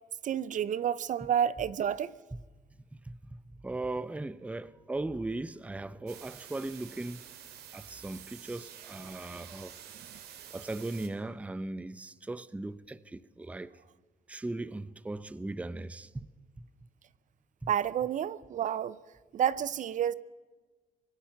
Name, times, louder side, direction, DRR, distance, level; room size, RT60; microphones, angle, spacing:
voice 1, 0.2-2.2 17.7-19.0 19.3-20.1, right 9 dB, 50° right, 0.6 m, -30 dB
voice 2, 2.9-7.2 7.7-9.8 10.5-13.7 14.3-16.3 16.6-16.7 17.6-17.7, right 2 dB, 10° right, 0.6 m, -38 dB
sound 1, 6.1-11.1, right 9 dB, 75° right, 2.5 m, -49 dB
25.5 x 19.0 x 5.9 m
cardioid pair, 110°, 17 cm